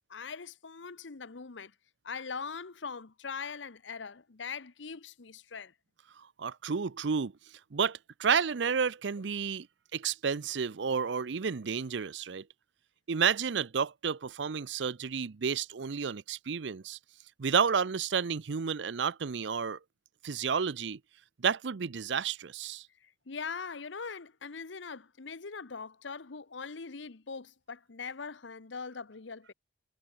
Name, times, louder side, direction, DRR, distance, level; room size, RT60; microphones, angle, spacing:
voice 1, 0.1-1.7 2.0-5.7 23.0-29.5, left 5 dB, 75° left, 0.9 m, -41 dB
voice 2, 6.2-7.3 7.7-9.7 9.9-12.4 13.1-17.0 17.4-19.8 20.2-21.0 21.4-22.8, right 6 dB, 70° right, 0.6 m, -31 dB
head